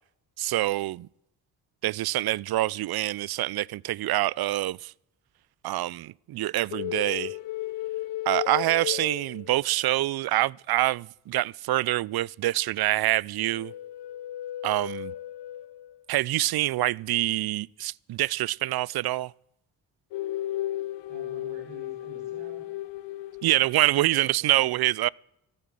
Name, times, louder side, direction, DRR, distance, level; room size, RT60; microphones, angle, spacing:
voice 1, 0.4-1.1 1.8-4.9 5.6-7.4 8.3-13.7 14.6-15.1 16.1-19.3 23.4-25.1, right 16 dB, 60° right, 0.5 m, -26 dB
sound 1, 6.7-9.9 13.4-16.0 20.1-23.9, left 14 dB, 85° left, 0.9 m, -35 dB
voice 2, 21.1-22.6 24.1-24.6, right 4 dB, 85° right, 5.0 m, -49 dB
14.0 x 12.0 x 7.6 m
supercardioid pair, 45°, 42 cm